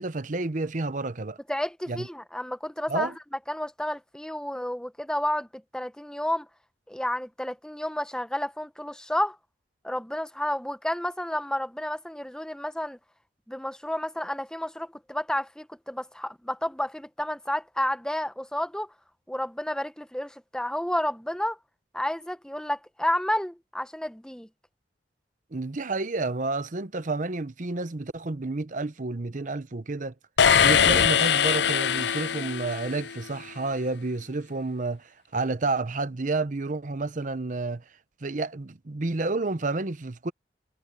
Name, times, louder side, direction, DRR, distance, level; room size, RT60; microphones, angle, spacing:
voice 1, 0.0-1.4 1.9-2.1 2.9-3.1 25.5-30.1 30.6-37.8 38.2-40.3, right 3 dB, 45° right, 0.8 m, -30 dB
voice 2, 1.5-3.1 3.5-6.5 6.9-9.4 9.8-13.0 13.5-18.9 19.3-21.6 21.9-24.5, left 1 dB, 5° left, 0.9 m, -31 dB
sound 1, 30.4-33.2, left 8 dB, 70° left, 0.6 m, -22 dB
head